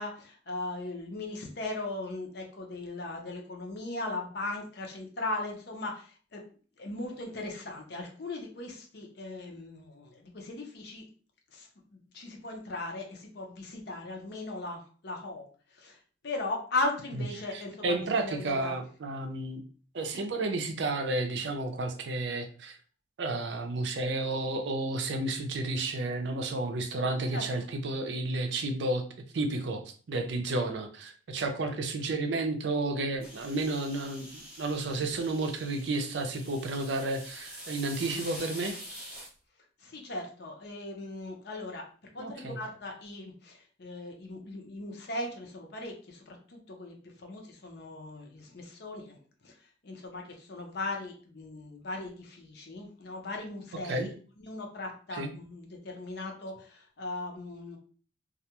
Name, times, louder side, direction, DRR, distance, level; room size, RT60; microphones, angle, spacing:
voice 1, 0.0-6.4 6.8-11.0 11.5-18.0 18.2-18.7 20.1-20.2 27.3-27.4 35.0-35.1 39.8-41.8 42.1-57.8, left 2 dB, 60° left, 1 dB, 0.7 m, -38 dB
voice 2, 17.5-19.6 19.9-22.8 23.2-29.0 29.3-29.8 30.1-38.8 42.2-42.6 53.8-54.1 55.1-55.3, right 2 dB, 65° right, 5 dB, 0.5 m, -31 dB
sound 1, 33.2-39.3, equal, 5° right, 0.6 m, -45 dB
2.4 x 2.2 x 2.8 m, 0.41 s
head